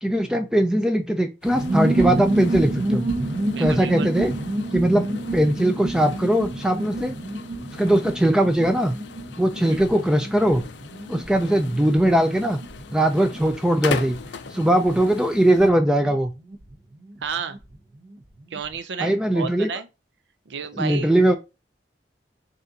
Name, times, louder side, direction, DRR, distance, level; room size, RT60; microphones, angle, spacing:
voice 1, 0.0-3.1 3.6-4.3 4.7-5.0 5.3-7.1 7.8-8.9 9.4-10.6 11.1-12.6 12.9-14.2 14.5-16.3 19.0-19.7 20.7-21.3, right 1 dB, 5° right, 0.3 m, -20 dB
sound 1, 1.4-15.7, left 5 dB, 80° left, 0.4 m, -39 dB
sound 2, 1.5-17.8 18.0-18.1 18.3-18.7, right 1 dB, 50° right, 0.9 m, -29 dB
voice 2, 3.5-4.1 9.6-9.8 17.2-17.6 18.5-19.9 20.5-21.1, right 5 dB, 85° right, 0.5 m, -31 dB
4.1 x 2.5 x 3.9 m
head